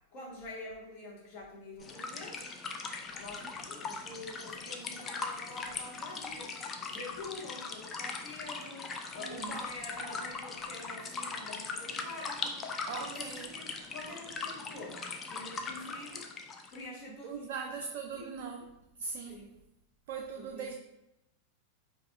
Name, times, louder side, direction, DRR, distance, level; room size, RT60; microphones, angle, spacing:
voice 1, 0.1-2.5 2.9-12.6 13.0-17.7 18.1-18.3 19.2-19.5 20.3-20.8, left 2 dB, 45° left, -4 dB, 1.2 m, -46 dB
sound 1, 1.8-16.8, left 4 dB, 25° left, 0.4 m, -40 dB
voice 2, 12.9-13.5 17.2-18.7 19.0-19.4 20.1-20.7, right 6 dB, 50° right, 3 dB, 0.3 m, -40 dB
4.6 x 2.6 x 2.5 m, 0.89 s
figure-of-eight pair, 90°, 0 cm